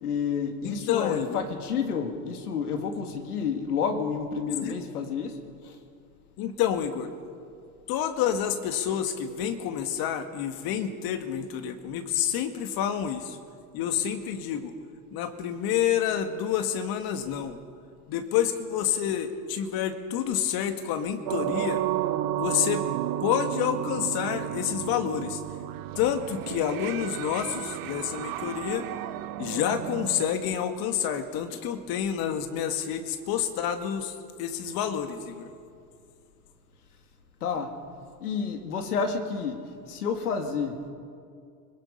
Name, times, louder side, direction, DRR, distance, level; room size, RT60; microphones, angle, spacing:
voice 1, 0.0-5.7 31.5-31.6 37.4-37.7 38.2-40.8, left 6 dB, 90° left, 6 dB, 2.3 m, -30 dB
voice 2, 0.6-1.4 4.6-4.7 6.4-7.1 7.9-13.4 13.7-14.8 15.1-17.6 18.1-21.8 22.3-22.9 23.2-25.4 26.0-28.9 29.4-35.5, left 9 dB, 55° left, 8 dB, 2.1 m, -28 dB
sound 1, 21.3-30.3, right 14 dB, 50° right, 1.1 m, -32 dB
24.5 x 21.5 x 5.6 m, 2.4 s
hypercardioid pair, 95°, 44 cm